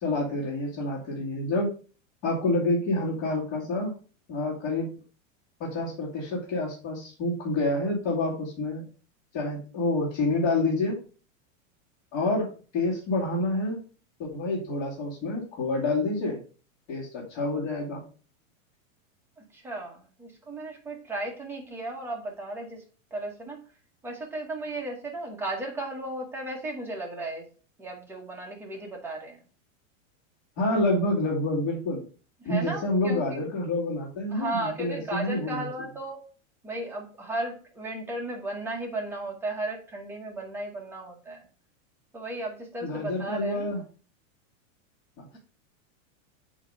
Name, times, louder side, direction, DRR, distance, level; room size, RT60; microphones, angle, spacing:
voice 1, 0.0-1.7 2.2-3.9 4.3-4.9 5.6-8.9 9.3-11.0 12.1-13.8 14.2-16.4 16.9-18.0 30.6-32.0 32.4-35.7 42.8-43.8 45.2-45.3, left 2 dB, 35° left, -7 dB, 2.5 m, -28 dB
voice 2, 19.4-22.8 23.1-23.6 24.0-27.4 27.8-29.4 32.4-33.4 34.3-36.2 36.6-41.5 42.1-43.7, right 2 dB, 5° right, 0 dB, 1.1 m, -35 dB
8.9 x 3.1 x 5.2 m, 0.38 s
supercardioid pair, 170°, 40 cm